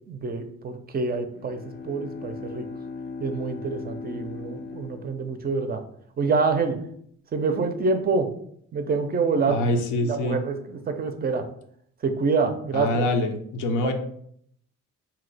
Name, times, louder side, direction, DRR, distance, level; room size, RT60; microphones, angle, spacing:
voice 1, 0.0-2.7 3.2-5.8 6.2-6.8 7.3-8.3 8.7-9.7 9.9-11.5 12.0-13.1 13.8-13.9, right 4 dB, 30° right, 7 dB, 0.4 m, -26 dB
Bowed string instrument, 1.3-5.9, left 4 dB, 35° left, 0.4 m, -38 dB
voice 2, 9.5-10.4 12.7-13.9, left 2 dB, 85° left, 6 dB, 0.5 m, -25 dB
2.7 x 2.0 x 3.9 m, 0.67 s
cardioid pair, 90°, 30 cm